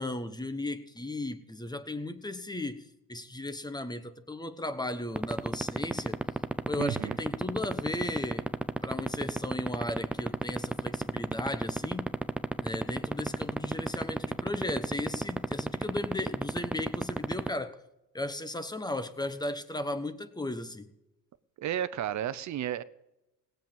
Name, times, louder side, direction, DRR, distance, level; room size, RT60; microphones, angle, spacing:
voice 1, 0.0-6.2 6.7-8.5 8.8-12.1 12.6-17.8 18.1-20.9, left 2 dB, 10° left, 1.1 m, -36 dB
sound 1, 5.2-17.5, right 1 dB, 5° right, 0.7 m, -27 dB
voice 2, 6.8-7.2 21.6-22.8, right 11 dB, 55° right, 0.8 m, -32 dB
17.5 x 7.9 x 7.3 m
cardioid pair, 90°, 34 cm